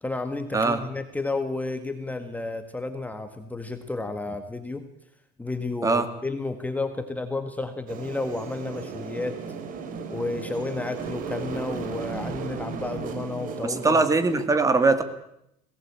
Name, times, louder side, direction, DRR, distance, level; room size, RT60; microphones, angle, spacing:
voice 1, 0.0-4.9 5.4-9.4 10.1-14.0, left 3 dB, 10° left, 7 dB, 1.7 m, -31 dB
sound 1, 7.9-14.5, right 5 dB, 50° right, 3.4 m, -35 dB
voice 2, 13.6-15.0, right 3 dB, 20° right, 10 dB, 2.3 m, -21 dB
21.5 x 18.0 x 8.7 m, 0.79 s
cardioid pair, 130°, 18 cm